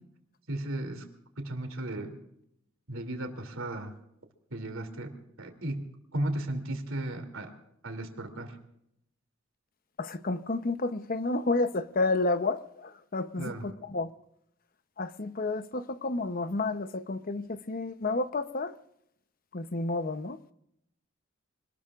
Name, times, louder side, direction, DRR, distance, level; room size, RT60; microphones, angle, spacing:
voice 1, 0.5-1.1 1.4-2.2 2.9-3.9 4.5-5.1 5.4-5.8 6.1-7.5 7.8-8.6 13.4-13.7, right 1 dB, 80° right, 2.8 m, -35 dB
voice 2, 10.0-14.1 15.0-18.7 19.5-20.4, left 3 dB, 45° left, 0.8 m, -30 dB
25.5 x 19.5 x 2.5 m
head